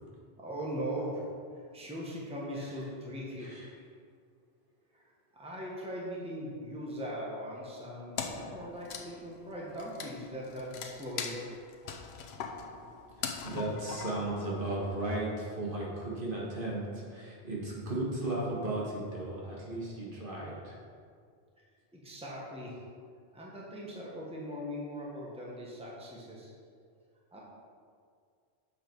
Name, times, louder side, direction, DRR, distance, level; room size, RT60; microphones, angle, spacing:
voice 1, 0.4-1.3 1.7-3.5 4.9-5.0 5.3-11.4 21.9-22.8 23.3-26.5 27.3-27.4, equal, 5° right, -5 dB, 1.1 m, -40 dB
Wood, 8.2-14.9, left 6 dB, 80° left, 0.9 m, -41 dB
voice 2, 13.2-20.8, right 2 dB, 55° right, -5 dB, 1.6 m, -35 dB
7.6 x 5.0 x 4.6 m, 2.2 s
omnidirectional pair, 1.1 m